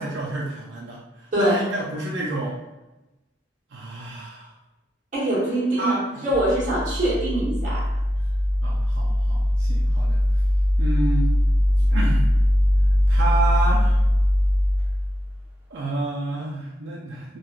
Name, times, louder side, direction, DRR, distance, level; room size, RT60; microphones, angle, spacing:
voice 1, 0.0-2.6 3.7-4.5 5.8-6.2 8.6-10.3 10.8-11.3 11.9-12.2 13.1-14.0 15.7-17.4, right 2 dB, 85° right, -4 dB, 0.5 m, -30 dB
voice 2, 1.3-1.7 5.1-6.0 6.2-8.0, right 1 dB, 45° right, -6 dB, 1.1 m, -23 dB
sound 1, 6.3-15.4, left 1 dB, 5° right, 0.7 m, -21 dB
3.0 x 2.4 x 2.3 m, 1.0 s
head